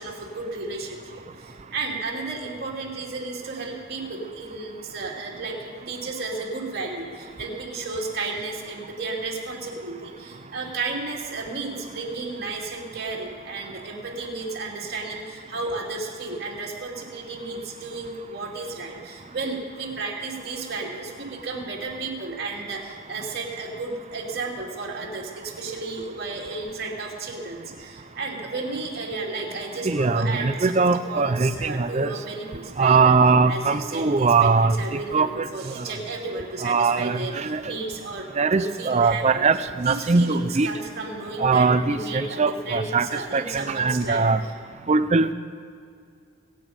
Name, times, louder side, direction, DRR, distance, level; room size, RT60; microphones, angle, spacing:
voice 1, 0.0-33.2 33.5-38.3 38.5-39.5 39.8-44.5, right 3 dB, 50° right, -2 dB, 2.7 m, -33 dB
voice 2, 29.8-32.2 32.8-35.8 36.6-37.7 38.4-40.7 41.4-44.4 44.9-45.3, right 4 dB, 30° right, 11 dB, 0.5 m, -21 dB
22.5 x 9.1 x 5.1 m, 2.3 s
head